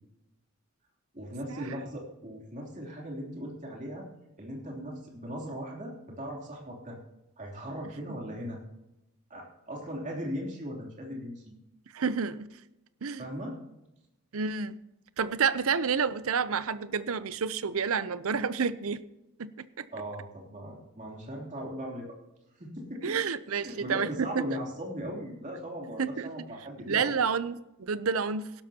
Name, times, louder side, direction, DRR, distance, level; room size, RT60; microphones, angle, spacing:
voice 1, 1.1-4.1 4.4-7.0 7.4-8.6 9.3-11.5 13.2-13.6 19.9-22.1 22.6-23.2 23.5-27.2, equal, 35° right, -1 dB, 3.1 m, -38 dB
voice 2, 11.9-12.6 13.0-13.3 14.3-14.8 15.2-19.0 19.4-19.9 23.0-24.5 26.0-26.3 26.9-28.5, right 6 dB, 65° right, 15 dB, 0.6 m, -29 dB
17.0 x 12.0 x 2.9 m, 0.92 s
head